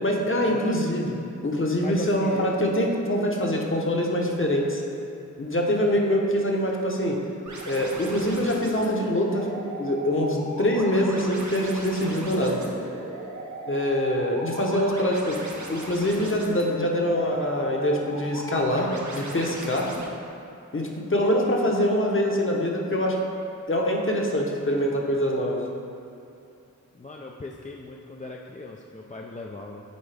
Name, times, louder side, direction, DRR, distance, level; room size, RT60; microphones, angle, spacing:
voice 1, 0.0-1.2 1.4-4.8 5.4-7.2 7.6-9.5 9.8-12.6 13.7-15.4 15.7-19.9 20.7-23.1 23.7-25.6, equal, 40° left, -1 dB, 1.0 m, -24 dB
voice 2, 1.8-2.5 26.9-29.8, left 2 dB, 25° left, 0 dB, 0.4 m, -38 dB
sound 1, 7.5-20.0, right 2 dB, 65° right, 0.9 m, -38 dB
9.6 x 3.9 x 3.4 m, 2.7 s
wide cardioid pair, 45°, 31 cm